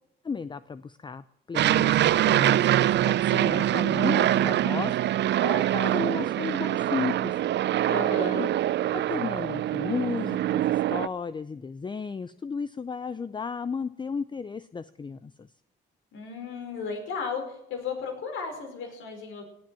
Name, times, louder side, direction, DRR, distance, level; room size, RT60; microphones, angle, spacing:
voice 1, 0.2-5.0 5.4-7.4 8.1-8.5 8.9-15.5, left 5 dB, 25° left, 14 dB, 0.5 m, -34 dB
Aircraft, 1.6-11.1, right 12 dB, 60° right, 0.5 m, -24 dB
voice 2, 7.9-8.5 16.1-19.5, left 4 dB, 80° left, 3 dB, 4.9 m, -34 dB
18.0 x 7.5 x 7.6 m, 0.79 s
cardioid pair, 90°, 20 cm